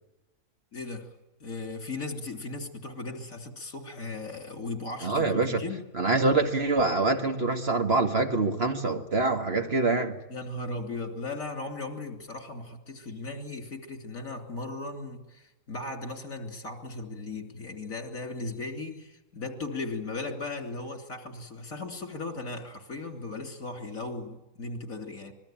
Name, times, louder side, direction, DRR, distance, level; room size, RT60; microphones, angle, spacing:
voice 1, 0.7-1.1 1.4-5.8 10.3-25.3, left 3 dB, 65° left, 3.6 m, -37 dB
voice 2, 5.0-5.6 5.9-10.2, right 3 dB, 45° right, 2.0 m, -25 dB
25.5 x 21.0 x 9.0 m
omnidirectional pair, 1.5 m